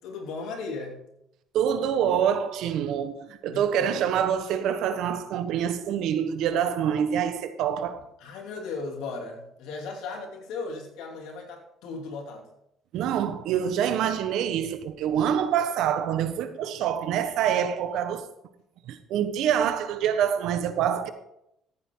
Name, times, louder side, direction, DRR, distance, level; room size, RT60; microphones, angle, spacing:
voice 1, 0.0-1.1 3.5-4.2 8.2-12.5, left 4 dB, 80° left, 3.1 m, -37 dB
voice 2, 1.5-8.0 12.9-18.3 18.8-21.1, right 9 dB, 75° right, 1.2 m, -26 dB
15.0 x 9.1 x 3.9 m
cardioid pair, 105°, 0 cm